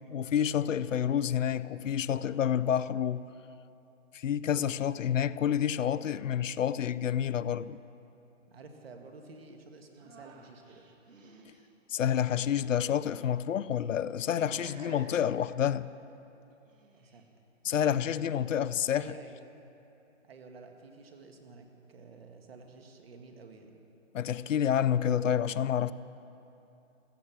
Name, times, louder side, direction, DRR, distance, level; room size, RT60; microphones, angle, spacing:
voice 1, 0.1-3.2 4.1-7.8 11.9-15.9 17.6-19.1 24.1-25.9, left 9 dB, 75° left, 0.6 m, -29 dB
voice 2, 1.0-1.5 4.5-4.9 8.5-10.9 14.4-15.1 16.9-17.2 18.4-19.4 20.2-23.8, right 3 dB, 50° right, 1.8 m, -51 dB
sound 1, 9.9-11.7 12.5-13.3 14.0-14.3 14.6-15.2 16.5-17.3, right 3 dB, 80° right, 2.1 m, -57 dB
16.5 x 14.0 x 6.1 m
hypercardioid pair, 175°, 38 cm